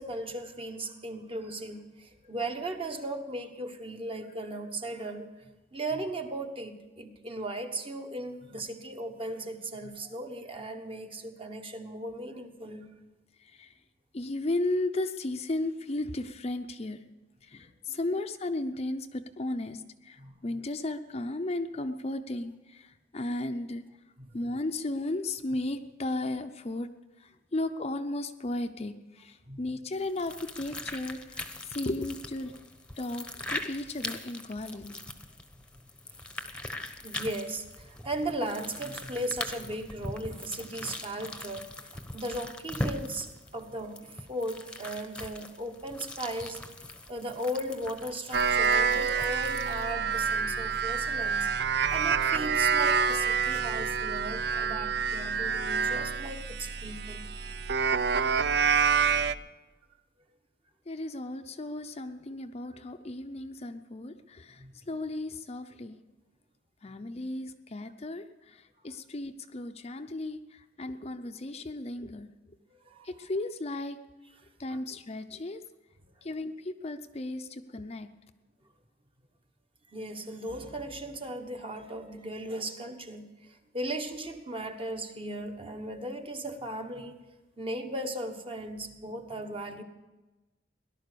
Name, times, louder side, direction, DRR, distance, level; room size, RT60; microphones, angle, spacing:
voice 1, 0.0-12.9 17.9-18.0 20.2-20.4 24.2-24.4 29.5-29.6 37.0-46.6 47.1-51.5 51.9-57.3 57.8-57.9 58.7-58.8 59.2-59.4 64.6-64.7 72.7-73.1 74.7-74.8 79.9-87.2 87.6-89.8, right 1 dB, 30° right, 5 dB, 1.2 m, -37 dB
voice 2, 13.4-13.7 14.1-17.0 17.4-23.8 24.3-26.9 27.2-32.5 33.0-35.0 60.9-66.0 66.8-72.3 73.0-74.0 74.6-75.6 76.2-78.1, left 2 dB, 35° left, 7 dB, 0.6 m, -35 dB
sound 1, 30.0-49.9, left 2 dB, 5° left, 0.9 m, -41 dB
sound 2, 48.3-59.3, right 6 dB, 60° right, 0.5 m, -27 dB
17.5 x 11.5 x 6.8 m, 1.1 s
head